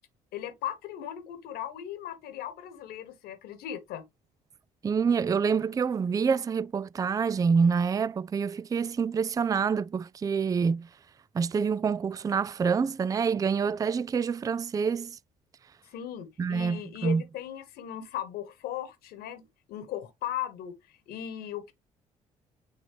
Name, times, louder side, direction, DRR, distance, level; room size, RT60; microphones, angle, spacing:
voice 1, 0.3-4.0 15.9-21.7, left 11 dB, 65° left, 1.3 m, -37 dB
voice 2, 4.8-10.9 11.3-15.2 16.4-17.2, right 6 dB, 20° right, 0.3 m, -27 dB
9.3 x 3.9 x 3.1 m
hypercardioid pair, 50°, 17 cm